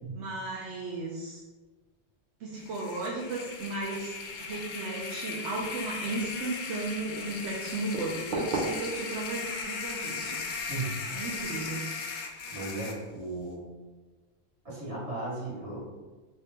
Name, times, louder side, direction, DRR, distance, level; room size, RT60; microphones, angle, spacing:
voice 1, 0.1-1.4 2.4-10.4 11.1-11.9, right 2 dB, 90° right, -4 dB, 0.9 m, -35 dB
sound 1, 2.6-13.0, left 5 dB, 55° left, 0.6 m, -38 dB
Writing, 3.6-11.7, right 2 dB, 50° right, 0.9 m, -41 dB
voice 2, 10.7-11.1 12.5-13.7 14.6-15.8, right 2 dB, 70° right, -7 dB, 1.8 m, -36 dB
3.6 x 2.9 x 3.3 m, 1.3 s
omnidirectional pair, 1.1 m